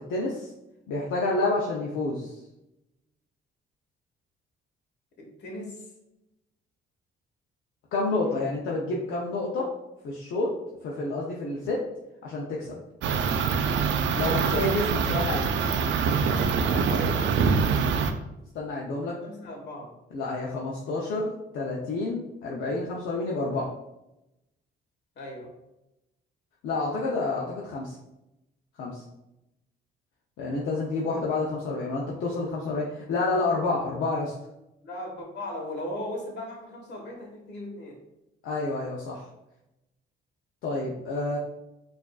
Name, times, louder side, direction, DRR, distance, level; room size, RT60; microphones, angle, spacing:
voice 1, 0.1-0.5 0.9-2.3 7.9-9.7 10.0-10.5 10.8-11.9 12.2-12.8 14.2-15.5 18.5-19.2 20.1-23.7 26.6-27.9 28.8-29.0 30.4-34.3 38.4-39.2 40.6-41.4, left 2 dB, 80° left, -3 dB, 0.6 m, -29 dB
voice 2, 5.2-5.9 8.2-8.6 14.6-14.7 16.6-17.5 19.2-19.9 25.1-25.5 34.8-38.0, left 1 dB, 60° left, 0 dB, 1.2 m, -38 dB
sound 1, 13.0-18.1, right 5 dB, 70° right, 0.4 m, -24 dB
4.7 x 2.6 x 2.3 m, 0.90 s
cardioid pair, 90°, 20 cm